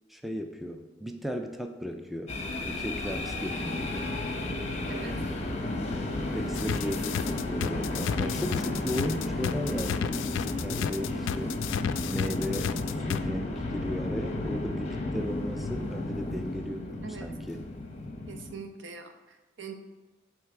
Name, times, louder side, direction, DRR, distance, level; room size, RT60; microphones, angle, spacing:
voice 1, 0.1-4.1 4.9-5.4 6.3-11.6 12.1-17.6, equal, ahead, 5 dB, 0.3 m, -36 dB
sound 1, 2.3-18.5, left 2 dB, 35° left, 0.8 m, -33 dB
voice 2, 4.9-5.2 17.0-17.3 18.3-19.7, right 5 dB, 75° right, 5 dB, 0.8 m, -42 dB
sound 2, 6.5-13.2, left 9 dB, 85° left, 0.3 m, -32 dB
7.6 x 3.2 x 4.9 m, 1.2 s
head